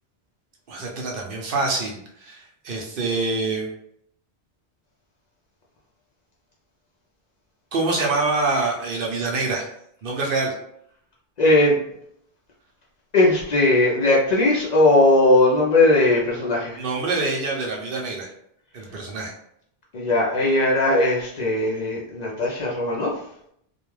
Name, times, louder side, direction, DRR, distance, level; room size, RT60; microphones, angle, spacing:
voice 1, 0.7-3.7 7.7-9.7 10.0-10.5 16.8-18.3 18.7-19.3, right 3 dB, 65° right, 0 dB, 0.8 m, -25 dB
voice 2, 11.4-11.8 13.1-16.8 19.9-23.2, left 2 dB, 55° left, -4 dB, 0.5 m, -19 dB
2.3 x 2.2 x 3.1 m, 0.71 s
omnidirectional pair, 1.0 m